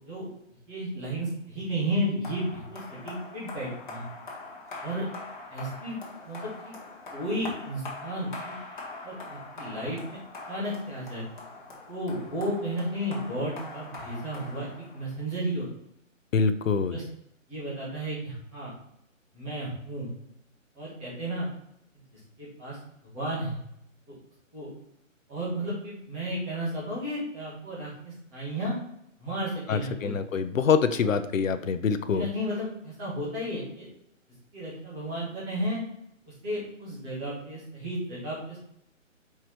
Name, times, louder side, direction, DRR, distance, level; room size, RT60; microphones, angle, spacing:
voice 1, 0.7-4.0 4.8-5.0 5.5-6.0 6.2-6.7 7.1-8.5 9.0-10.2 10.5-11.2 11.9-14.7 14.9-15.7 16.7-17.0 17.5-18.7 19.3-20.1 20.7-21.5 22.4-22.8 23.1-23.6 24.1-24.2 24.5-24.7 25.3-28.7 29.2-30.2 31.0-31.1 32.1-33.9 34.5-35.8 36.4-38.6, right 1 dB, 10° right, -8 dB, 1.5 m, -33 dB
sound 1, 2.2-15.3, left 3 dB, 35° left, 1.4 m, -43 dB
voice 2, 16.3-17.0 29.7-32.2, left 6 dB, 75° left, 10 dB, 0.7 m, -25 dB
4.9 x 4.7 x 4.4 m, 0.76 s
hypercardioid pair, 170°, 39 cm